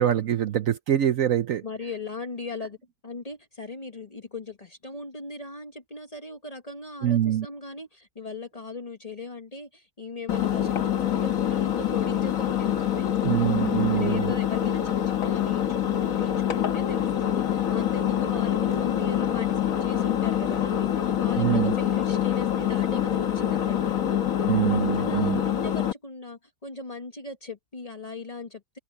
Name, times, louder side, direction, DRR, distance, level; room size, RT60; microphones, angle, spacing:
voice 1, 0.0-1.6 7.0-7.5 13.2-14.3 21.4-21.7 24.5-25.4, right 11 dB, 65° right, 1.0 m, -24 dB
voice 2, 1.6-2.8 3.0-13.1 13.9-24.1 25.0-28.8, left 3 dB, 25° left, 1.2 m, -39 dB
Engine, 10.3-25.9, left 10 dB, 60° left, 1.5 m, -25 dB
open air
omnidirectional pair, 1.7 m